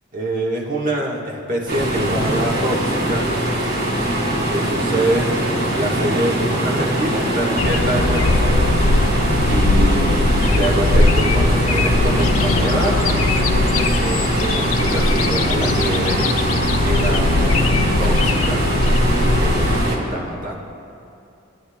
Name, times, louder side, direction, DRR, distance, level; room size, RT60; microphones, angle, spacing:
voice 1, 0.1-3.2 4.5-5.3 5.7-8.8 9.5-10.3 10.6-13.0 14.0-16.3 16.8-17.3 18.0-18.7 19.3-20.6, right 1 dB, 40° right, -2 dB, 1.5 m, -25 dB
sound 1, 1.7-20.0, right 1 dB, 60° right, 2.6 m, -22 dB
sound 2, 7.6-19.8, left 2 dB, 85° left, 0.6 m, -19 dB
20.5 x 10.0 x 2.3 m, 2.6 s
head